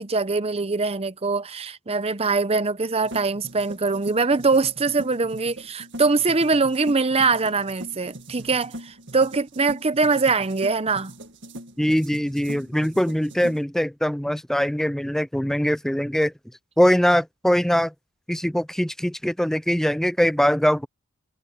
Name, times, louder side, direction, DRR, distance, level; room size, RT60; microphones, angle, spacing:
voice 1, 0.0-11.1, right 4 dB, 25° right, 0.8 m, -23 dB
sound 1, 3.0-13.6, right 1 dB, 55° right, 1.9 m, -41 dB
voice 2, 11.8-16.3 16.8-17.9 18.3-20.9, equal, ahead, 0.4 m, -22 dB
head